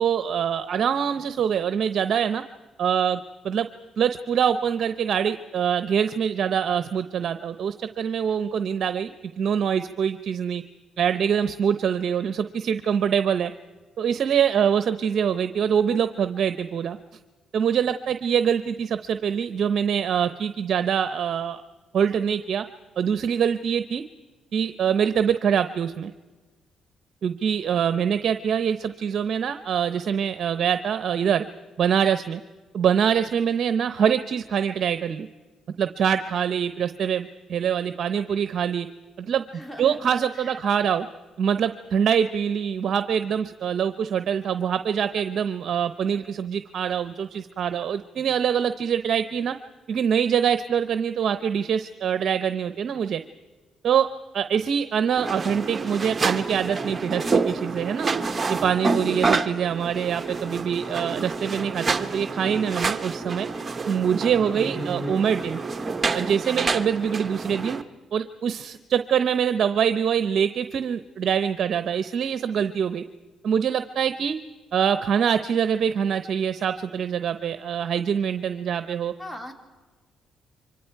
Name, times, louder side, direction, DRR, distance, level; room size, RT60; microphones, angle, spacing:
voice 1, 0.0-2.4 2.8-3.2 3.4-3.7 4.0-10.6 11.0-13.5 14.0-17.0 17.5-21.6 21.9-22.6 23.0-24.0 24.5-26.1 27.2-31.4 31.8-32.4 32.7-35.3 35.8-38.9 39.2-39.4 39.8-41.1 41.4-49.5 49.9-53.2 53.8-54.1 54.3-58.1 58.5-63.5 63.9-65.6 66.1-67.8 68.1-73.0 73.4-74.4 74.7-79.1, right 8 dB, 60° right, 10 dB, 0.8 m, -24 dB
voice 2, 39.5-40.1 40.4-40.6 67.5-67.8 79.2-79.5, equal, 15° left, 5 dB, 3.3 m, -39 dB
sound 1, 55.2-67.8, right 4 dB, 30° right, 1.3 m, -28 dB
29.5 x 24.5 x 4.7 m, 1.3 s
cardioid pair, 90°, 0 cm